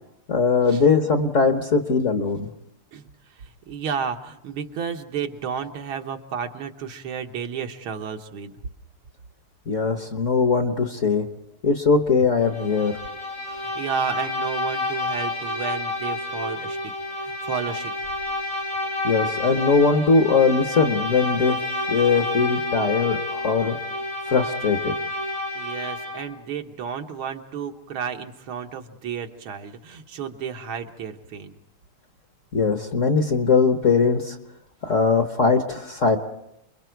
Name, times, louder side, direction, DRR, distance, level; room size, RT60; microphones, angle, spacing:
voice 1, 0.3-2.5 9.7-11.2 11.6-13.0 19.0-21.6 21.9-23.7 24.3-24.9 32.5-34.4 34.8-36.2, left 4 dB, 45° left, 6 dB, 1.2 m, -20 dB
voice 2, 3.4-8.5 13.5-16.9 17.2-17.9 25.6-31.6, right 7 dB, 75° right, 4 dB, 1.9 m, -32 dB
Bowed string instrument, 12.4-26.3, left 2 dB, 90° left, 7.9 m, -29 dB
30.0 x 22.5 x 4.6 m, 0.82 s
omnidirectional pair, 2.4 m